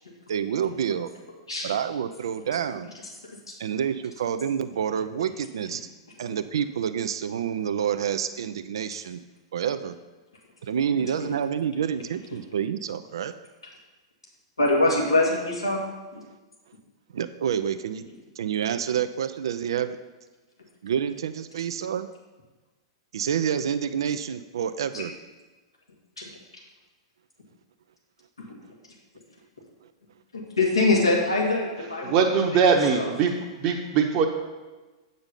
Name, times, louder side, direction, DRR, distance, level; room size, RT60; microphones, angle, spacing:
voice 1, 0.3-1.1 1.6-2.9 3.6-5.8 6.2-9.2 9.5-10.0 10.6-13.3 17.1-18.0 18.4-20.0 20.8-22.1 23.1-25.1, right 8 dB, 70° right, 11 dB, 0.4 m, -28 dB
voice 2, 14.6-15.8 16.1-16.2 24.9-25.0 26.2-26.3 28.4-28.6 30.3-32.3 32.8-33.1, left 2 dB, 85° left, -2 dB, 1.8 m, -24 dB
voice 3, 32.0-33.3 33.6-34.3, right 6 dB, 40° right, 1 dB, 0.9 m, -21 dB
7.9 x 5.2 x 5.6 m, 1.2 s
figure-of-eight pair, 105°, 3 cm